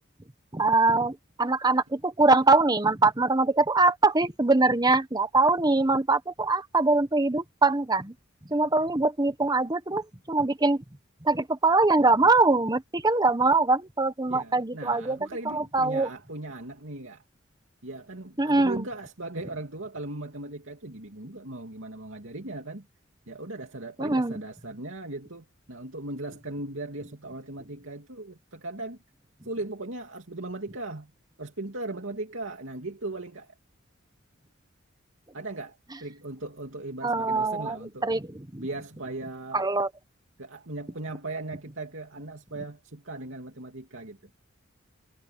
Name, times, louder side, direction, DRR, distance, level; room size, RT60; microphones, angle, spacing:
voice 1, 0.5-8.1 8.5-10.8 11.2-15.2 15.4-16.1 18.4-18.8 24.0-24.4 37.0-37.7 38.0-38.2 38.5-38.6 39.5-39.9, right 3 dB, 20° right, 1.2 m, -23 dB
voice 2, 14.3-17.2 17.8-22.9 23.3-29.0 29.4-31.1 31.4-33.5 35.3-38.1 38.6-39.7 40.4-44.3, right 2 dB, 80° right, 2.8 m, -38 dB
head